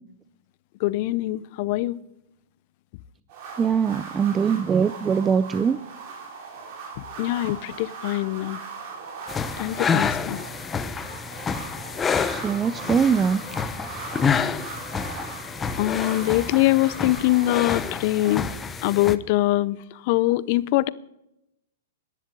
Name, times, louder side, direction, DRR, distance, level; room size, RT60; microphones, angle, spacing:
voice 1, 0.8-2.0 7.2-8.6 9.6-10.4 15.8-18.5 18.8-19.8 20.1-20.9, left 17 dB, 50° left, 0.6 m, -23 dB
sound 1, 3.3-18.5, right 5 dB, 50° right, 5.1 m, -39 dB
voice 2, 3.6-5.8 12.3-13.4, right 6 dB, 20° right, 0.5 m, -22 dB
sound 2, 9.3-19.2, left 6 dB, 20° left, 0.8 m, -28 dB
11.0 x 11.0 x 9.0 m
hypercardioid pair, 125°, 0 cm